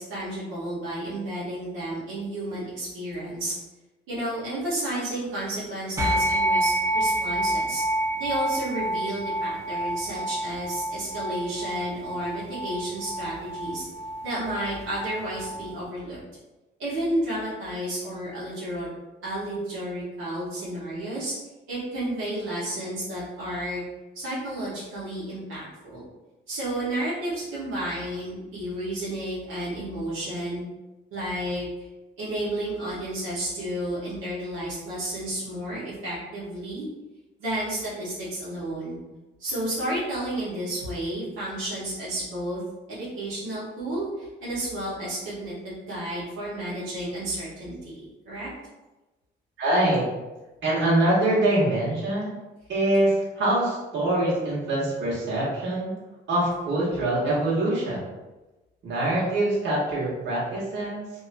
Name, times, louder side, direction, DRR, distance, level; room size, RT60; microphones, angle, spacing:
voice 1, 0.0-3.5 4.1-7.8 8.2-13.9 14.2-16.2 16.8-18.9 19.2-21.3 21.7-23.8 24.1-26.0 26.5-30.6 31.1-31.7 32.2-36.9 37.4-39.0 39.4-42.6 42.9-48.5, right 1 dB, 85° right, -9 dB, 1.0 m, -31 dB
sound 1, 6.0-15.7, right 1 dB, 15° right, 0.7 m, -28 dB
voice 2, 49.6-50.1 50.6-52.3 52.7-55.9 56.3-58.0 58.8-61.1, right 1 dB, 65° right, -6 dB, 1.2 m, -24 dB
2.7 x 2.3 x 2.5 m, 1.1 s
cardioid pair, 90°, 20 cm